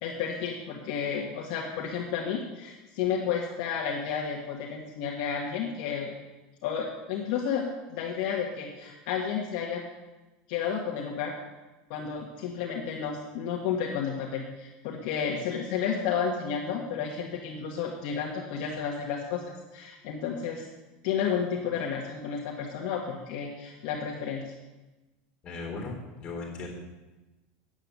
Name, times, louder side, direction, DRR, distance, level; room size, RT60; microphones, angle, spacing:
voice 1, 0.0-6.1 6.6-9.8 10.5-11.3 11.9-19.4 19.7-20.6 21.0-24.4, left 7 dB, 55° left, -1 dB, 1.4 m, -31 dB
voice 2, 25.4-26.7, left 3 dB, 20° left, -1 dB, 3.7 m, -37 dB
9.0 x 7.5 x 8.1 m, 1.1 s
supercardioid pair, 175°, 5 cm